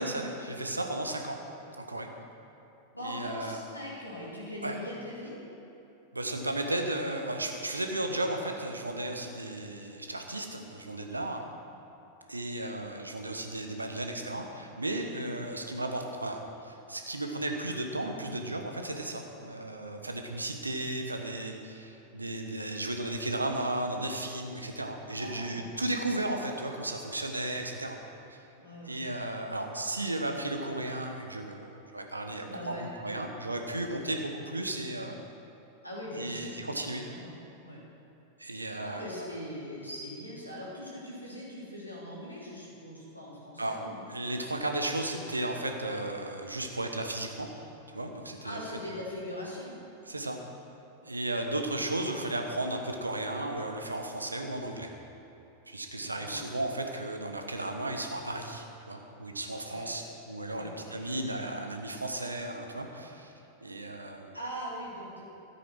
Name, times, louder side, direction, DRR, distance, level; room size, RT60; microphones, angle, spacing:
voice 1, 0.0-1.4 1.8-2.1 3.0-3.6 4.6-4.8 6.1-11.4 12.3-28.0 28.3-28.4 28.8-35.2 36.1-37.0 38.4-39.3 43.6-43.8 44.1-47.5 47.9-48.6 50.0-50.4 51.0-54.9 55.7-63.3 63.6-64.4, right 1 dB, 80° right, 4 dB, 1.1 m, -34 dB
voice 2, 3.0-5.4 25.1-25.7 28.6-29.0 32.5-32.9 35.8-37.3 37.6-37.8 38.8-44.1 48.4-49.8 56.0-56.4 59.6-60.1 60.5-61.2 64.3-65.2, equal, 85° left, -6 dB, 3.3 m, -41 dB
13.0 x 8.4 x 6.1 m, 2.9 s
figure-of-eight pair, 90°, 0 cm